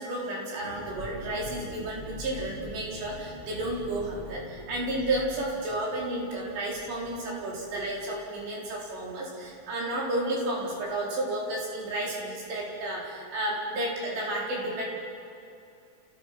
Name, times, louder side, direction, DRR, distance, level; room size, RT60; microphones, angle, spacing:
voice 1, 0.0-4.4 4.7-14.9, right 1 dB, 90° right, -4 dB, 6.3 m, -32 dB
sound 1, 0.6-10.0 10.2-10.3 10.7-11.0, left 2 dB, 15° left, 6.5 m, -45 dB
28.0 x 16.0 x 6.0 m, 2.6 s
omnidirectional pair, 4.8 m